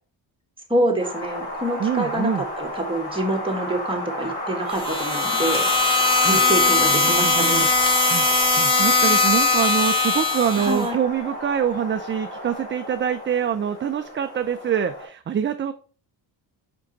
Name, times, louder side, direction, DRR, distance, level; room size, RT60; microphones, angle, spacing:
voice 1, 0.7-5.7 6.2-7.7 10.6-11.0, right 1 dB, 10° right, 1 dB, 1.6 m, -26 dB
Wind, 1.0-15.0, equal, 60° left, 3.6 m, -33 dB
voice 2, 1.8-2.4 6.2-6.4 7.0-7.7 8.1-15.7, right 8 dB, 30° right, 8 dB, 0.4 m, -25 dB
sound 1, 4.7-10.9, left 3 dB, 10° left, 1.8 m, -20 dB
sound 2, 5.5-5.6 6.1-6.2 6.6-6.8 7.1-7.2 7.5-7.6 7.9-8.0 8.3-8.4 8.8-8.9 9.3-9.4, left 1 dB, 30° left, 2.3 m, -36 dB
5.4 x 5.2 x 3.9 m, 0.39 s
cardioid pair, 110°, 43 cm